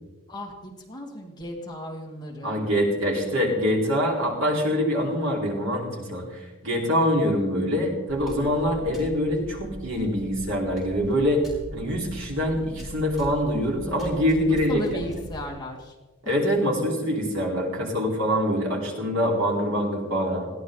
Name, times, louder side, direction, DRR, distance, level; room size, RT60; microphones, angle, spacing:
voice 1, 0.3-2.6 14.7-15.9, equal, 20° left, -1 dB, 2.4 m, -35 dB
voice 2, 2.4-11.5 11.7-15.1 16.2-20.5, equal, 65° right, -2 dB, 4.6 m, -24 dB
sound 1, 8.1-15.5, equal, ahead, 5.7 m, -41 dB
21.0 x 16.5 x 4.0 m, 1.2 s
head